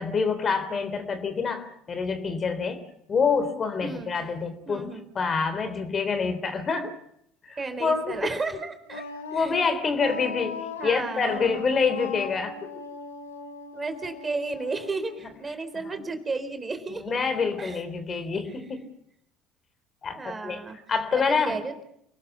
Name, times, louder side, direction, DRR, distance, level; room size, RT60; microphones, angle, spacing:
voice 1, 0.0-7.0 7.4-8.3 9.3-12.7 15.8-16.0 16.9-18.9 20.0-20.6 20.9-21.6, left 5 dB, 35° left, 10 dB, 3.5 m, -27 dB
voice 2, 3.8-4.1 4.7-5.0 7.6-9.1 9.3-9.5 10.8-11.3 13.7-17.2 17.6-17.8 20.1-20.8 21.1-21.8, right 3 dB, 25° right, 8 dB, 4.0 m, -33 dB
Wind instrument woodwind instrument, 8.9-15.8, left 5 dB, 80° left, 2.4 m, -39 dB
29.5 x 20.0 x 5.8 m, 0.74 s
figure-of-eight pair, 65°, 0 cm